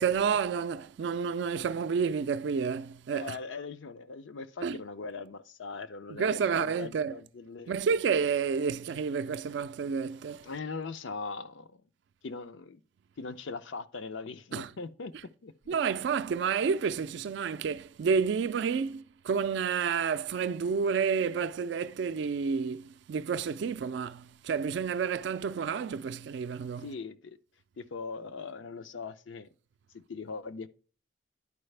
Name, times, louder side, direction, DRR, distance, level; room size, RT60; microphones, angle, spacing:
voice 1, 0.0-3.4 4.6-4.8 6.1-7.1 7.7-10.5 14.5-14.7 15.7-26.9, right 6 dB, 70° right, 0.3 m, -30 dB
voice 2, 3.1-7.7 10.4-11.8 12.2-12.8 13.2-15.1 15.4-15.8 26.8-27.4 27.8-29.5 30.1-30.7, left 4 dB, 80° left, 0.5 m, -40 dB
11.0 x 4.8 x 3.2 m
head